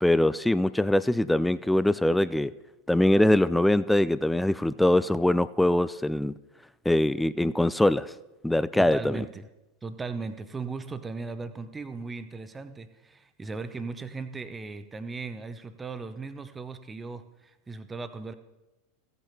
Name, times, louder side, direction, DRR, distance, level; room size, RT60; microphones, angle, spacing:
voice 1, 0.0-2.5 2.9-6.3 6.9-8.1 8.4-9.2, left 1 dB, 5° left, 0.3 m, -23 dB
voice 2, 8.8-9.5 9.8-18.3, right 4 dB, 15° right, 0.7 m, -37 dB
16.0 x 8.7 x 2.8 m
figure-of-eight pair, 85°, 0 cm